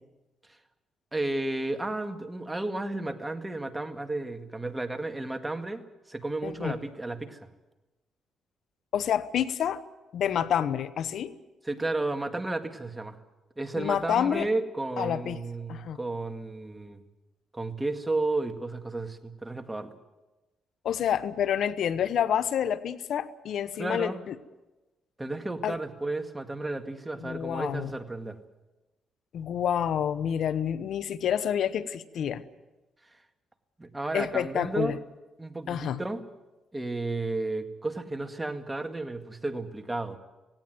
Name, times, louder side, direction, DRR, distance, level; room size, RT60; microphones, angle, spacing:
voice 1, 1.1-5.8 6.1-7.5 11.6-13.2 13.6-17.0 17.5-19.9 23.8-24.2 25.2-28.4 33.8-35.0 35.4-36.2 36.7-40.2, right 2 dB, 15° right, 6 dB, 2.0 m, -32 dB
voice 2, 6.4-6.7 8.9-9.8 10.1-11.3 13.8-14.5 15.0-15.4 15.7-16.0 20.8-24.3 25.6-25.8 27.2-27.9 29.3-32.4 34.1-35.0 35.7-36.0, left 9 dB, 70° left, 14 dB, 0.9 m, -28 dB
18.0 x 17.5 x 9.3 m, 1.1 s
cardioid pair, 90°, 0 cm